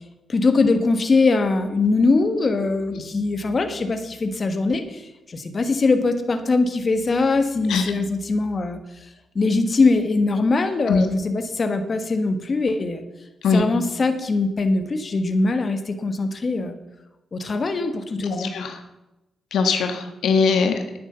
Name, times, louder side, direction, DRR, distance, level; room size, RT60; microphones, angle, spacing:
voice 1, 0.3-8.8 9.3-13.0 13.5-16.7 17.3-18.5, left 3 dB, 40° left, 7 dB, 1.4 m, -22 dB
voice 2, 18.2-18.8 19.5-21.0, left 5 dB, 85° left, 6 dB, 1.4 m, -21 dB
10.0 x 9.6 x 6.9 m, 0.97 s
cardioid pair, 80°, 0 cm